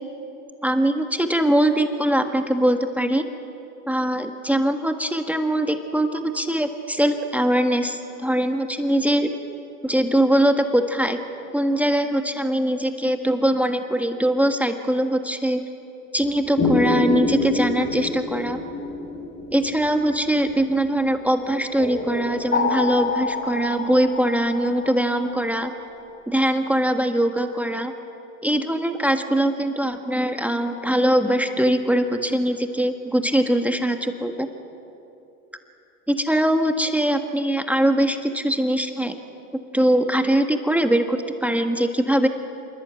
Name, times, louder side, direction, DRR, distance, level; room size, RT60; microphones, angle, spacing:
voice 1, 0.6-3.2 3.9-9.3 9.8-11.2 11.5-15.6 16.1-18.6 19.5-25.7 26.3-27.9 28.4-34.5 36.1-39.2 39.7-42.3, right 1 dB, 5° right, 6 dB, 1.7 m, -22 dB
sound 1, 16.6-20.8 21.8-25.6, left 3 dB, 25° left, 3.3 m, -26 dB
27.0 x 23.5 x 9.1 m, 2.7 s
hypercardioid pair, 100°, 45 cm